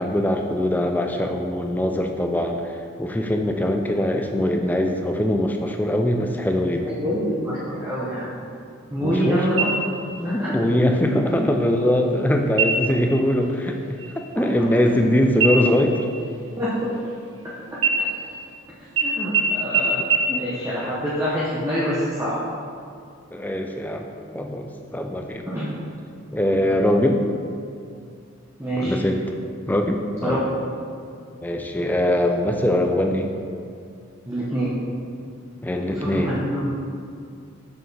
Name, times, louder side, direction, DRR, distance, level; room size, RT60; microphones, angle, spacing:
voice 1, 0.0-6.9 9.0-9.4 10.2-13.8 14.1-16.0 20.3-20.5 23.3-24.1 24.3-25.4 26.3-27.2 28.8-29.2 29.7-30.4 31.4-33.3 35.6-36.4, left 1 dB, 10° left, 3 dB, 0.4 m, -22 dB
voice 2, 6.8-8.3 8.9-9.7 10.2-10.5 16.6-16.7 19.0-20.0 20.3-22.4 25.5-25.7 26.6-26.7 28.6-29.0 30.2-30.4 34.3-34.7 35.9-36.8, equal, 15° right, -9 dB, 0.9 m, -26 dB
sound 1, 9.6-10.2 10.6-10.7 11.3-11.8 12.5-13.0 13.4-13.7 14.0-15.1 15.4-17.4 17.8-18.6 19.0-19.1 19.3-19.4 19.7-19.8 20.1-20.2, right 5 dB, 65° right, 1.0 m, -24 dB
6.9 x 6.3 x 3.3 m, 2.4 s
head